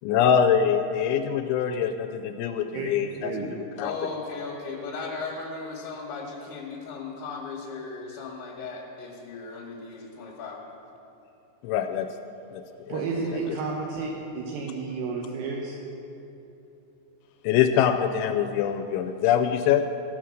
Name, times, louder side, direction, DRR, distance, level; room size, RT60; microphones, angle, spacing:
voice 1, 0.0-3.9 11.6-12.1 12.5-12.6 12.9-13.0 13.3-13.4 17.4-19.9, left 8 dB, 90° left, 6 dB, 2.9 m, -24 dB
voice 2, 2.7-3.5 12.9-15.8, right 4 dB, 75° right, -1 dB, 2.8 m, -32 dB
voice 3, 3.8-10.6, left 4 dB, 70° left, -3 dB, 2.8 m, -36 dB
15.0 x 5.8 x 6.3 m, 2.9 s
omnidirectional pair, 5.2 m